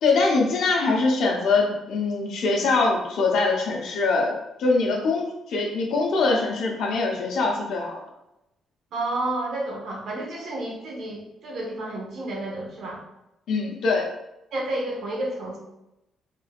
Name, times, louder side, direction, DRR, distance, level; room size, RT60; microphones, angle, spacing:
voice 1, 0.0-4.3 4.6-8.0 13.5-14.1, left 3 dB, 75° left, -1 dB, 0.9 m, -23 dB
voice 2, 8.9-13.0 14.5-15.6, right 2 dB, 65° right, -2 dB, 1.2 m, -30 dB
3.6 x 3.4 x 2.4 m, 0.89 s
cardioid pair, 90°, 0 cm